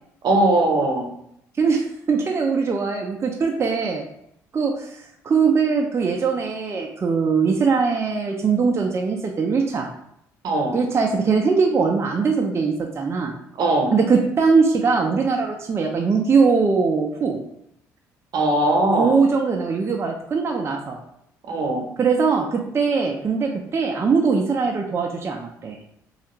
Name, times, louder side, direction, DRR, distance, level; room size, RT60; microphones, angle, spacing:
voice 1, 0.2-1.1 10.4-10.8 13.6-14.0 18.3-19.2 21.5-21.9, right 1 dB, 65° right, 2 dB, 0.8 m, -20 dB
voice 2, 1.6-4.0 4.5-9.9 10.7-13.3 13.9-17.4 19.0-21.0 22.0-25.8, right 5 dB, 35° right, 1 dB, 0.5 m, -21 dB
3.2 x 2.4 x 2.9 m, 0.74 s
supercardioid pair, 65°, 8 cm